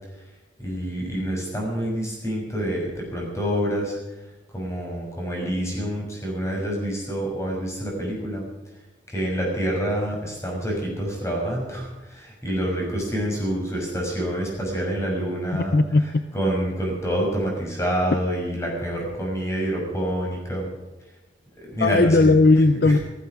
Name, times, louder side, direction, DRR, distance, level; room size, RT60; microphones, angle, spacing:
voice 1, 0.6-4.0 4.5-8.4 9.1-15.8 16.3-20.7 21.6-22.3 22.8-23.0, equal, 15° left, -1 dB, 6.2 m, -27 dB
voice 2, 15.7-16.2 21.8-23.0, left 3 dB, 55° left, 12 dB, 0.6 m, -17 dB
15.5 x 15.0 x 6.2 m, 1.1 s
head